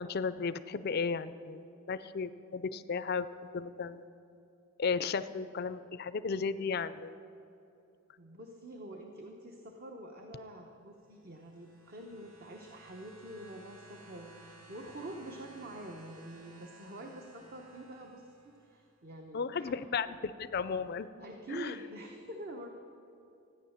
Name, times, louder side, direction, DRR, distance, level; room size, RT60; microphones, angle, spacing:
voice 1, 0.0-3.3 3.5-4.0 4.8-7.2 19.3-21.1 21.5-21.7, left 5 dB, 45° left, 13 dB, 0.4 m, -34 dB
voice 2, 8.2-19.8 21.2-22.7, right 1 dB, 45° right, 3 dB, 0.9 m, -46 dB
sound 1, 11.1-18.9 19.9-20.0, right 3 dB, 80° right, 2.2 m, -57 dB
14.0 x 9.6 x 7.2 m, 2.8 s
head